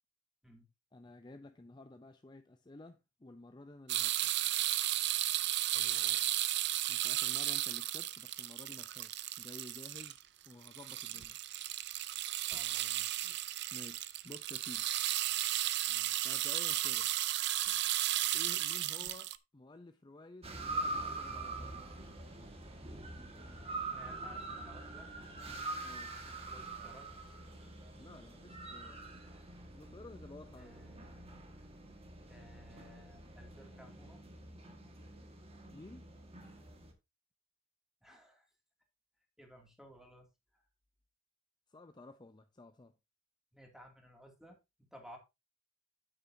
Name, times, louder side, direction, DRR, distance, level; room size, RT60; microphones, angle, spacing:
voice 1, 0.9-4.3 6.9-11.4 13.7-14.9 16.2-17.1 18.3-21.7 25.8-26.1 28.0-29.0 29.7-30.8 35.7-36.0 41.7-42.9, left 2 dB, 25° left, 0.5 m, -53 dB
sound 1, 3.9-10.2 10.5-19.4, right 14 dB, 60° right, 0.6 m, -34 dB
voice 2, 5.7-6.4 12.5-13.1 15.9-16.1 23.9-25.1 26.3-27.1 30.5-31.4 32.3-34.2 38.0-38.5 39.4-40.3 40.5-40.6 43.5-45.2, equal, 5° right, 2.5 m, -57 dB
sound 2, 20.4-36.9, right 2 dB, 30° right, 1.7 m, -44 dB
9.3 x 8.7 x 2.7 m
head